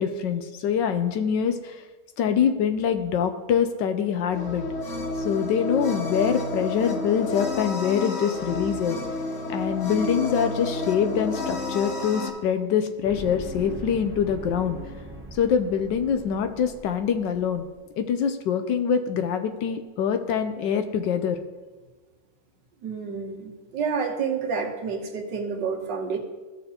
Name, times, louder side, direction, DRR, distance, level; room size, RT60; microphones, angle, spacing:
voice 1, 0.0-1.8 2.2-4.6 5.2-9.0 9.5-14.8 15.3-17.7 18.0-21.4, left 7 dB, 75° left, 8 dB, 1.2 m, -24 dB
sound 1, 4.3-12.3, left 3 dB, 50° left, 1.1 m, -30 dB
sound 2, 13.0-17.8, right 1 dB, 15° right, 0.4 m, -41 dB
voice 2, 22.8-26.2, right 5 dB, 65° right, 4 dB, 1.5 m, -29 dB
15.0 x 6.6 x 2.9 m, 1.3 s
omnidirectional pair, 2.1 m